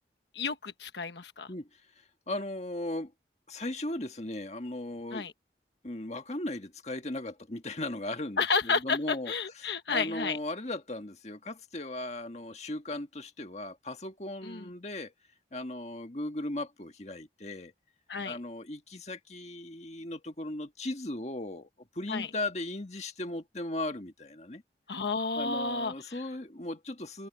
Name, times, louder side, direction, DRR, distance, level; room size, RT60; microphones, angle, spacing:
voice 1, 0.3-1.5 5.1-5.3 8.4-10.4 14.4-14.7 18.1-18.4 22.1-22.3 24.9-26.2, left 4 dB, 80° left, 1.2 m, -31 dB
voice 2, 1.5-3.1 3.5-5.3 5.8-15.1 15.5-17.7 18.2-24.6 25.4-27.3, left 1 dB, 40° left, 1.8 m, -37 dB
open air
head